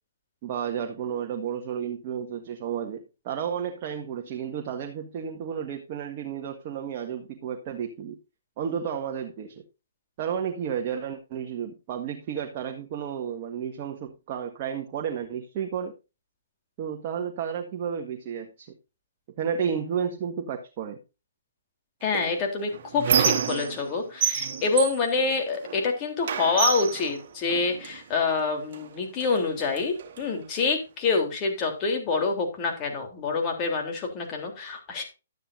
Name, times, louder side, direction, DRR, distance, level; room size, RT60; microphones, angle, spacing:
voice 1, 0.4-8.2 8.6-9.6 10.2-15.9 16.8-18.7 19.4-21.0, right 8 dB, 40° right, 2 dB, 1.6 m, -32 dB
voice 2, 22.0-35.0, left 4 dB, 30° left, 3 dB, 3.5 m, -27 dB
Squeak, 22.1-23.9 24.2-25.9 26.2-28.0 28.7-28.9 29.2-30.2, right 7 dB, 55° right, 1.9 m, -28 dB
12.0 x 9.9 x 2.7 m, 0.29 s
hypercardioid pair, 135°, 0 cm